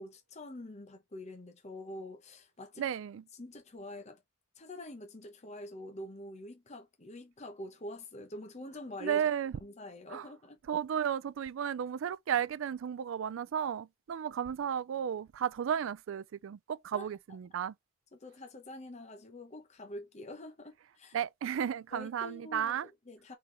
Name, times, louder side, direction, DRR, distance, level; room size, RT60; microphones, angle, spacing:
voice 1, 0.0-2.8 3.3-4.2 4.6-9.2 9.6-10.6 16.9-17.1 18.1-21.2 21.9-22.8 23.1-23.3, left 1 dB, 35° left, 0.8 m, -46 dB
voice 2, 2.8-3.2 9.0-9.5 10.1-10.3 10.7-17.7 21.1-22.9, right 8 dB, 70° right, 0.3 m, -34 dB
4.3 x 3.8 x 3.2 m
head